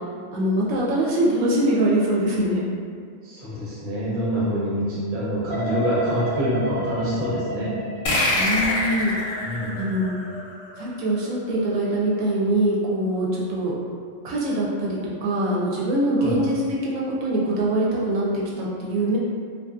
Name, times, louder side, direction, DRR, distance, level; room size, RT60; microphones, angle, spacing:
voice 1, 0.3-2.7 8.3-9.1 9.8-10.1 10.8-13.7 14.2-16.5 16.8-18.2 18.6-19.2, right 1 dB, 80° right, -6 dB, 1.0 m, -23 dB
voice 2, 3.2-7.7 9.4-9.9 16.2-16.4, equal, 45° right, -8 dB, 0.8 m, -26 dB
sound 1, 5.5-12.4 12.8-13.3, equal, 30° left, 0.4 m, -34 dB
sound 2, 8.1-11.1, left 1 dB, 60° left, 0.7 m, -25 dB
2.6 x 2.4 x 2.3 m, 2.1 s
omnidirectional pair, 1.4 m